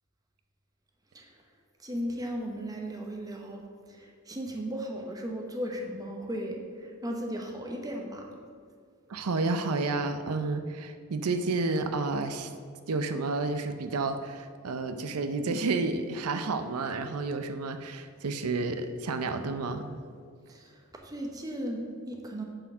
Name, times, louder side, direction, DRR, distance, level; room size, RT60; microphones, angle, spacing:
voice 1, 1.8-3.6 3.9-8.3 20.5-22.4, equal, 15° right, 2 dB, 0.9 m, -36 dB
voice 2, 9.1-12.5 12.9-20.0, right 3 dB, 85° right, 8 dB, 0.5 m, -30 dB
8.8 x 4.7 x 6.1 m, 2.1 s
head